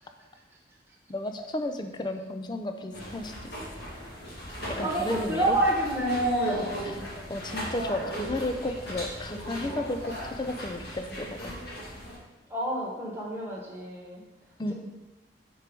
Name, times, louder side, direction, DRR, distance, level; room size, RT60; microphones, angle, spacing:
voice 1, 1.1-3.5 4.7-5.6 6.8-7.0 7.3-11.5 14.6-14.7, left 1 dB, 25° left, 6 dB, 0.4 m, -33 dB
sound 1, 2.9-12.2, equal, 60° left, 1.8 m, -35 dB
voice 2, 4.8-6.7 7.9-8.0 12.5-14.2, right 1 dB, 15° right, -4 dB, 1.1 m, -29 dB
4.6 x 4.5 x 5.2 m, 1.1 s
head